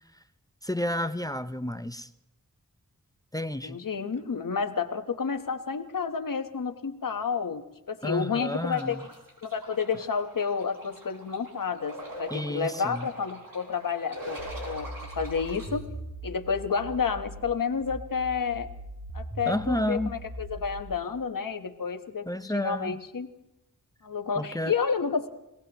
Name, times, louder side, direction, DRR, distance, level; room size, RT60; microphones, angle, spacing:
voice 1, 0.6-2.1 3.3-3.8 8.0-9.0 12.3-13.1 19.5-20.1 22.3-23.0 24.4-24.7, left 1 dB, 10° left, 12 dB, 0.6 m, -31 dB
voice 2, 3.6-9.0 9.4-14.4 14.6-15.8 16.2-18.7 19.1-23.3 24.0-25.3, left 5 dB, 70° left, 7 dB, 1.1 m, -30 dB
sound 1, 8.7-15.7, equal, 80° right, 4.8 m, -43 dB
sound 2, 14.4-17.4 17.8-20.8, right 2 dB, 45° right, 5.4 m, -40 dB
27.5 x 17.5 x 3.0 m, 0.95 s
cardioid pair, 50°, 34 cm